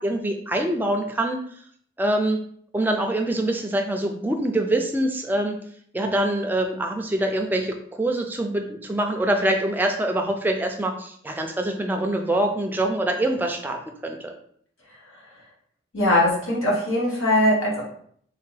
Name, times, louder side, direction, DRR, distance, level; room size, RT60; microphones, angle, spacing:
voice 1, 0.0-1.4 2.0-2.5 2.7-5.6 5.9-14.3, right 1 dB, 10° right, 3 dB, 0.3 m, -24 dB
voice 2, 15.9-17.9, left 1 dB, 90° left, -4 dB, 1.5 m, -21 dB
3.3 x 3.3 x 3.2 m, 0.62 s
head